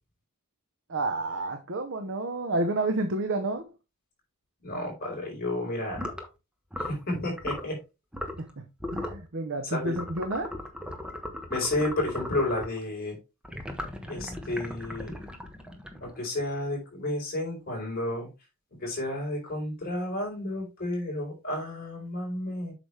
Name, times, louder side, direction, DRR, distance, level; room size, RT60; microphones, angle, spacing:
voice 1, 0.9-3.6 8.4-8.6 8.9-10.5, right 2 dB, 60° right, 0.9 m, -30 dB
voice 2, 4.6-6.1 6.8-7.8 9.6-10.0 11.5-13.2 14.1-15.2 16.0-18.3 18.8-22.7, left 1 dB, 45° left, 4.4 m, -31 dB
sound 1, 5.9-6.3 6.7-7.0 7.4-7.7 8.1-8.5 8.8-9.2 9.9-12.8 13.4-16.3, left 1 dB, 5° right, 1.3 m, -37 dB
8.1 x 6.0 x 3.4 m
head